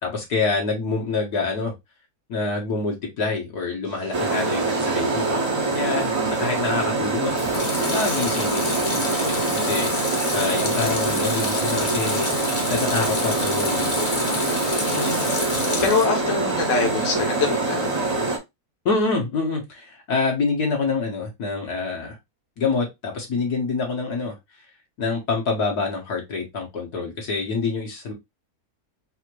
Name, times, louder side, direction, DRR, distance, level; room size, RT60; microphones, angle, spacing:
voice 1, 0.0-1.7 2.3-5.4 5.7-7.5 7.9-8.9 9.3-9.9 10.3-12.3 12.7-14.2 14.8-15.1 18.9-22.2 22.6-24.4 25.0-28.1, left 4 dB, 75° left, 2.1 m, -26 dB
sound 1, 3.9-9.8, right 8 dB, 70° right, 1.3 m, -35 dB
sound 2, 4.1-18.4, right 2 dB, 30° right, 1.0 m, -24 dB
Water tap faucet / Sink (filling or washing) / Liquid, 7.2-16.2 16.6-17.3, left 3 dB, 35° left, 1.0 m, -29 dB
voice 2, 14.8-18.1, left 4 dB, 55° left, 1.5 m, -25 dB
4.9 x 2.8 x 3.1 m
omnidirectional pair, 1.7 m